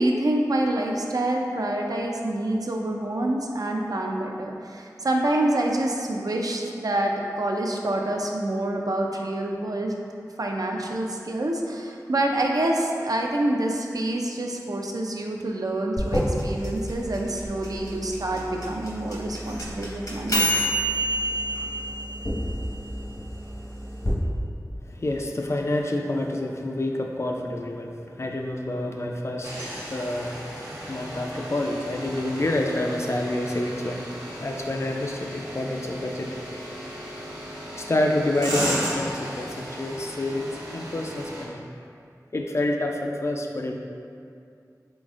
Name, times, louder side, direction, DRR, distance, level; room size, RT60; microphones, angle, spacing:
voice 1, 0.0-9.9 10.4-20.4, right 1 dB, 65° right, 1 dB, 0.4 m, -27 dB
sound 1, 16.0-24.1, equal, 60° left, 1.0 m, -27 dB
voice 2, 24.8-34.1 34.4-36.7 37.7-41.6 42.3-43.8, left 1 dB, 45° left, 1 dB, 0.4 m, -28 dB
sound 2, 29.4-41.5, equal, 85° right, 1.1 m, -35 dB
4.0 x 3.8 x 2.4 m, 2.4 s
wide cardioid pair, 60°, 7 cm